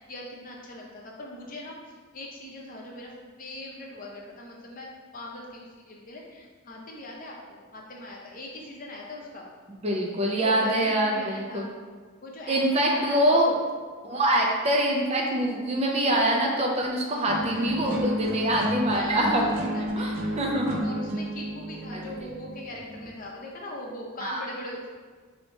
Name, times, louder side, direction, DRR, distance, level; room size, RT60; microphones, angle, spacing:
voice 1, 0.0-1.8 2.1-3.1 3.4-9.5 10.4-11.7 12.2-13.3 17.2-17.8 18.9-20.4 20.8-24.9, left 1 dB, 40° left, -2 dB, 0.6 m, -40 dB
voice 2, 9.8-11.7 12.5-13.6 14.0-19.4 19.8-20.8 21.9-22.0 24.2-24.4, right 1 dB, 30° right, -1 dB, 0.4 m, -24 dB
sound 1, 17.3-23.3, equal, 80° right, 0.5 m, -32 dB
2.9 x 2.8 x 4.3 m, 1.5 s
head